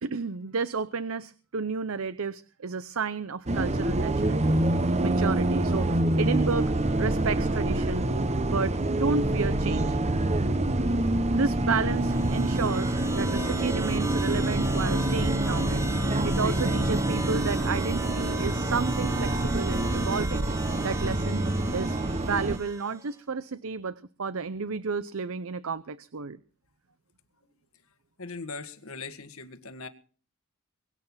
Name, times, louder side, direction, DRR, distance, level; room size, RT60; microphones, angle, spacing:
voice 1, 0.0-4.6 5.0-5.9 6.2-6.7 7.0-8.1 8.4-10.0 11.3-15.8 16.2-20.5 20.8-21.4 21.7-26.4, right 5 dB, 65° right, 0.7 m, -31 dB
Bus, 3.5-22.6, right 1 dB, 30° right, 1.0 m, -26 dB
sound 1, 11.9-23.1, right 2 dB, 15° right, 1.7 m, -38 dB
voice 2, 28.2-29.9, left 4 dB, 70° left, 1.7 m, -40 dB
22.5 x 9.0 x 5.7 m
head